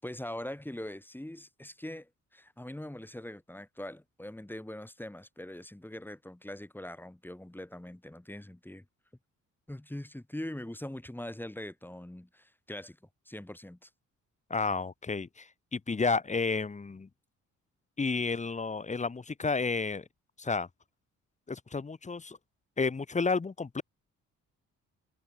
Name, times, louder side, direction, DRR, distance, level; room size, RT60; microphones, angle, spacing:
voice 1, 0.0-8.8 9.7-13.0 13.3-13.9, left 1 dB, 5° left, 7.3 m, -42 dB
voice 2, 14.5-17.1 18.0-20.0 20.4-20.7 21.5-22.4 22.8-23.8, left 4 dB, 25° left, 1.5 m, -31 dB
cardioid pair, 90°, 30 cm